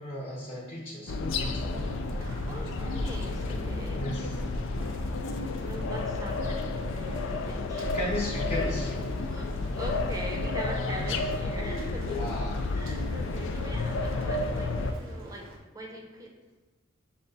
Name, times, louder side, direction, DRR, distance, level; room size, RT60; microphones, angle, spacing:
voice 1, 0.0-1.7 3.9-4.3 7.9-9.1 10.9-11.0 11.6-11.7 12.1-12.6, left 1 dB, 35° left, -6 dB, 0.8 m, -35 dB
sound 1, 1.1-14.9, left 2 dB, 70° left, 0.4 m, -31 dB
Rain, 1.7-15.6, right 1 dB, 75° right, 0.7 m, -49 dB
voice 2, 2.1-4.3 5.6-8.0 9.2-15.5 15.7-16.3, equal, 20° right, 0 dB, 0.7 m, -42 dB
6.0 x 2.2 x 3.9 m, 1.2 s
head